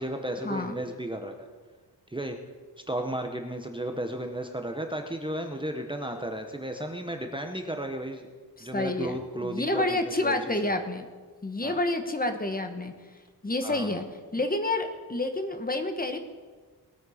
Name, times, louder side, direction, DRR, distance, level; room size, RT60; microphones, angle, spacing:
voice 1, 0.0-1.5 2.1-2.4 2.9-8.3 8.6-10.4 10.6-10.8 11.6-11.8 13.6-14.0, right 1 dB, 10° right, 4 dB, 0.9 m, -34 dB
voice 2, 8.6-9.2 9.4-11.1 11.4-12.9 13.4-14.0 14.3-16.2, left 2 dB, 20° left, 6 dB, 1.2 m, -29 dB
20.0 x 8.9 x 5.0 m, 1.4 s
wide cardioid pair, 160°, 40 cm